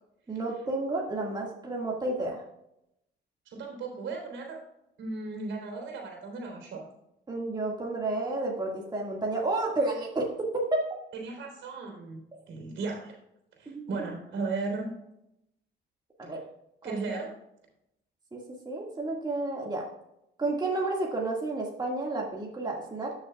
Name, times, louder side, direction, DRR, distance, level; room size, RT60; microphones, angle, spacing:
voice 1, 0.3-2.4 7.3-10.8 13.7-13.8 16.2-16.4 16.8-17.0 18.3-19.9 20.4-23.1, right 2 dB, 20° right, -2 dB, 1.8 m, -31 dB
voice 2, 3.4-4.6 5.0-6.8 11.1-12.2 12.5-13.2 13.6-14.9 16.8-17.3, right 3 dB, 80° right, 0 dB, 3.4 m, -35 dB
13.0 x 6.5 x 2.3 m, 0.81 s
cardioid pair, 90°, 20 cm